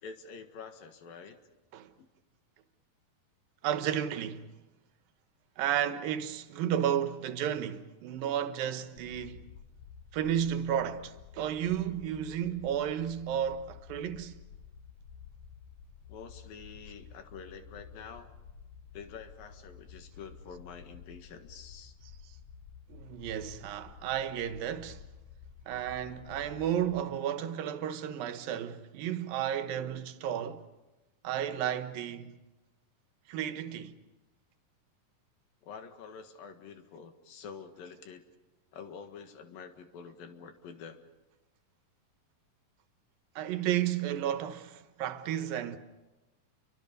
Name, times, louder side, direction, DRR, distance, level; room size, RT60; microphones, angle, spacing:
voice 1, 0.0-1.4 2.0-2.1 16.1-18.3 18.9-21.9 35.6-38.2 38.7-41.0, left 6 dB, 80° left, 3.5 m, -47 dB
voice 2, 3.6-4.5 5.6-9.4 10.1-14.3 22.9-25.0 25.7-30.6 31.2-32.4 33.3-33.9 43.4-45.8, right 10 dB, 85° right, 2.9 m, -32 dB
sound 1, 9.0-27.0, left 6 dB, 65° left, 1.7 m, -51 dB
30.0 x 24.0 x 5.4 m
omnidirectional pair, 4.0 m